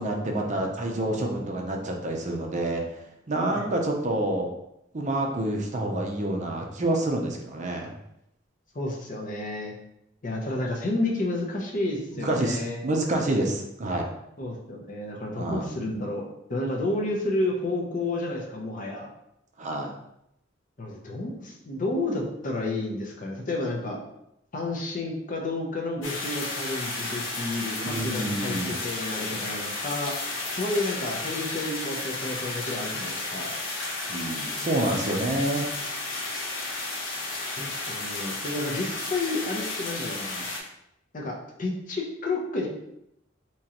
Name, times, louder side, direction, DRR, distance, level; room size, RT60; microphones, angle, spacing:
voice 1, 0.0-2.8 3.3-4.5 4.9-7.9 12.2-14.1 15.4-15.7 19.6-19.9 27.8-28.7 34.1-35.7, right 1 dB, 40° right, 1 dB, 0.5 m, -28 dB
voice 2, 8.7-9.7 10.2-12.8 14.4-19.1 20.8-24.0 24.5-30.2 30.6-33.5 35.1-35.2 37.6-40.5 41.1-42.7, left 2 dB, 45° left, 0 dB, 0.7 m, -31 dB
sound 1, 26.0-40.6, left 2 dB, 75° left, 0.8 m, -33 dB
3.7 x 3.0 x 2.9 m, 0.80 s
head